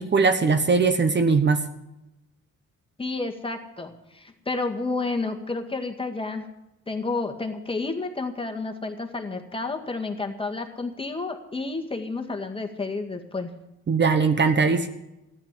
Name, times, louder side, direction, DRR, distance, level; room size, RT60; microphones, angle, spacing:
voice 1, 0.0-1.6 13.9-14.9, right 4 dB, 35° right, 8 dB, 1.2 m, -20 dB
voice 2, 3.0-6.5 6.9-13.5, left 3 dB, 15° left, 4 dB, 1.9 m, -30 dB
14.0 x 10.5 x 7.6 m, 0.94 s
cardioid pair, 90°, 30 cm